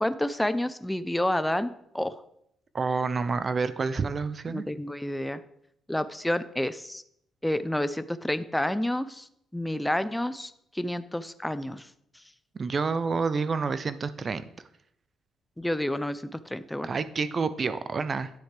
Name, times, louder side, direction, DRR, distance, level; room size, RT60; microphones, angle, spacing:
voice 1, 0.0-2.2 4.5-5.4 5.9-7.0 7.4-9.2 9.5-11.8 15.6-16.9, left 1 dB, 5° left, 13 dB, 0.5 m, -29 dB
voice 2, 2.7-4.6 12.5-14.4 16.8-18.3, right 4 dB, 40° right, 13 dB, 0.6 m, -28 dB
9.9 x 7.9 x 3.4 m, 0.74 s
cardioid pair, 90°, 0 cm